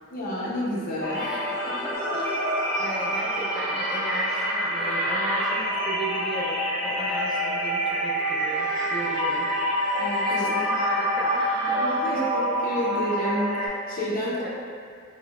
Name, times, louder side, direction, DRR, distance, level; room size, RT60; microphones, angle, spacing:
voice 1, 0.1-1.2 10.0-10.5 11.8-14.5, left 1 dB, 45° left, -6 dB, 0.6 m, -30 dB
sound 1, 1.0-13.7, equal, 20° right, 0.8 m, -27 dB
voice 2, 1.1-2.3 2.8-9.5 10.4-12.2 14.2-14.5, right 1 dB, ahead, -6 dB, 0.4 m, -35 dB
sound 2, 1.9-13.7, equal, 50° right, 0.9 m, -36 dB
4.7 x 2.0 x 2.3 m, 2.3 s
head